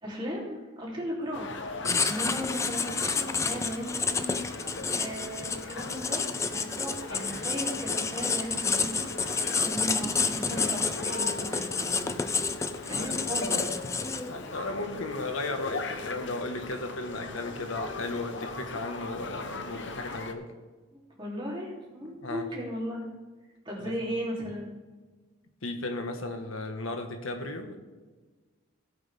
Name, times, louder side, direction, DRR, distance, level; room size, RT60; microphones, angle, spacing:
voice 1, 0.0-1.5 2.0-4.3 4.6-6.2 6.5-12.1 12.8-13.7 20.9-23.0 23.6-24.7, equal, 25° right, -5 dB, 3.2 m, -36 dB
sound 1, 1.3-20.3, left 3 dB, 60° left, 0.9 m, -40 dB
Writing, 1.8-14.4, left 5 dB, 15° left, 0.4 m, -30 dB
voice 2, 14.3-20.5 22.2-22.5 23.8-23.9 25.6-27.8, left 2 dB, 80° left, 5 dB, 1.5 m, -35 dB
16.0 x 8.6 x 3.6 m, 1.3 s
head